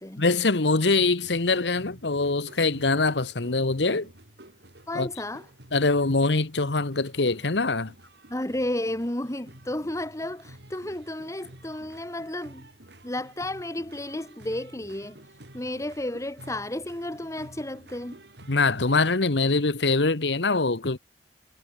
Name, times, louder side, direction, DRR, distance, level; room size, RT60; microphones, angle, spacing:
voice 1, 0.2-4.1 4.9-5.1 5.7-7.9 18.5-21.0, left 3 dB, 80° left, 1.3 m, -23 dB
sound 1, 1.2-19.2, right 1 dB, 70° right, 6.6 m, -50 dB
voice 2, 4.9-5.5 8.3-12.7 13.0-15.2 15.5-18.2, left 1 dB, 20° left, 2.1 m, -32 dB
head